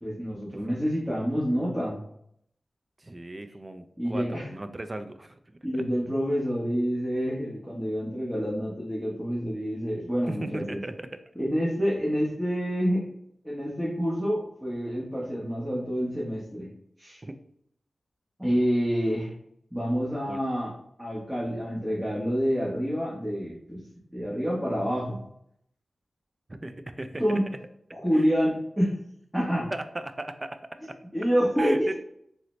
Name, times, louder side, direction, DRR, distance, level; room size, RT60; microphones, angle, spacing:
voice 1, 0.0-2.0 4.0-4.5 5.6-10.8 11.3-13.0 13.4-16.7 17.0-17.2 18.4-19.3 19.7-20.7 21.0-23.8 24.1-25.2 27.2-27.4 27.9-28.9 29.3-29.7 31.1-31.9, equal, 5° right, -6 dB, 1.0 m, -27 dB
voice 2, 3.0-5.4 5.7-5.8 10.3-11.2 17.2-17.4 20.3-20.4 26.6-27.2 28.1-28.3 29.7-31.0 31.6-31.9, right 1 dB, 30° right, 9 dB, 0.3 m, -36 dB
3.7 x 2.1 x 3.1 m, 0.71 s
cardioid pair, 55°, 0 cm